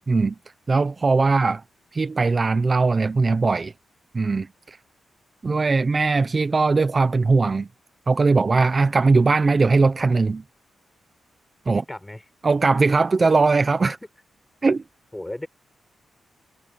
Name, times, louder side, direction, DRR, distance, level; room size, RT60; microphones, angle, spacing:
voice 1, 0.7-1.6 1.9-3.7 4.1-4.5 5.4-7.7 8.1-10.4 11.7-11.8 12.4-14.0 14.6-14.8, right 3 dB, 35° right, 0.9 m, -19 dB
voice 2, 11.7-12.2 13.8-14.1 15.1-15.5, left 1 dB, 10° left, 7.3 m, -35 dB
cardioid pair, 85°, 0 cm